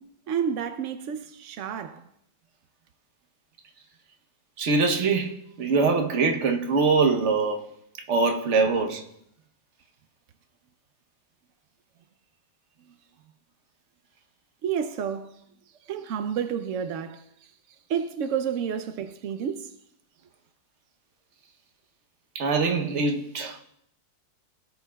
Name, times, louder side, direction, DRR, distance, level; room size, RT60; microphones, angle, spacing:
voice 1, 0.3-2.0 14.6-15.3 15.9-17.2 17.9-19.7, right 8 dB, 80° right, 0.7 m, -30 dB
voice 2, 4.6-7.6 8.1-9.0 22.3-23.6, right 4 dB, 50° right, 1.0 m, -23 dB
17.0 x 8.1 x 2.3 m
omnidirectional pair, 1.9 m